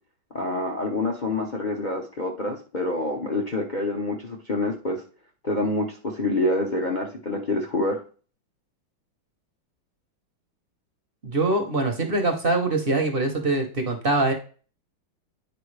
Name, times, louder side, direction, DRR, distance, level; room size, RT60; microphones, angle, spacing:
voice 1, 0.3-5.0 5.4-8.0, left 2 dB, 40° left, 0 dB, 0.6 m, -27 dB
voice 2, 11.2-14.3, right 2 dB, 40° right, 4 dB, 0.8 m, -23 dB
9.6 x 4.6 x 3.3 m, 0.39 s
omnidirectional pair, 2.2 m